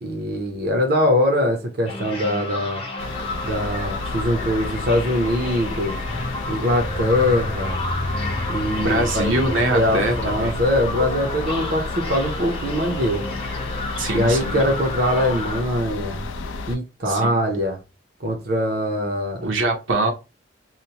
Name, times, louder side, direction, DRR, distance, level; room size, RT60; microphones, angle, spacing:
voice 1, 0.0-2.8 3.4-6.0 6.5-7.8 8.5-9.3 9.7-13.2 14.1-16.3 16.7-17.8 18.2-19.5, left 1 dB, 55° right, 0.6 m, -22 dB
sound 1, 1.9-15.6, left 2 dB, 30° left, 0.8 m, -31 dB
sound 2, 3.0-16.8, left 3 dB, 90° left, 0.4 m, -32 dB
sound 3, 6.1-11.2, left 1 dB, 15° left, 0.3 m, -32 dB
voice 2, 8.8-10.6 14.0-14.6 17.1-17.4 19.4-20.1, right 2 dB, 85° right, 0.8 m, -23 dB
2.9 x 2.1 x 2.8 m
head